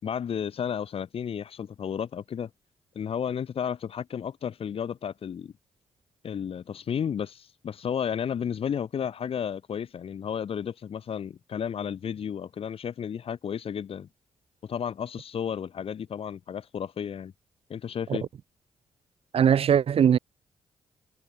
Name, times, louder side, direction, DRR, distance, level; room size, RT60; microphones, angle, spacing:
voice 1, 0.0-2.5 2.9-5.5 6.2-14.1 14.6-17.3 17.7-18.3, left 8 dB, 65° left, 5.9 m, -32 dB
voice 2, 19.3-20.2, right 8 dB, 65° right, 4.1 m, -20 dB
cardioid pair, 65°, 10 cm